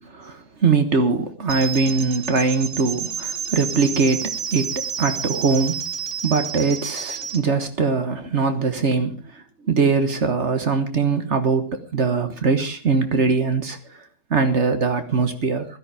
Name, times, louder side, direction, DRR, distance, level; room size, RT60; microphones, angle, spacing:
voice 1, 0.2-5.8 6.2-9.1 9.7-13.8 14.3-15.7, right 4 dB, 45° right, 1.6 m, -21 dB
sound 1, 1.5-7.4, right 7 dB, 75° right, 1.9 m, -30 dB
16.0 x 13.0 x 5.0 m
omnidirectional pair, 1.9 m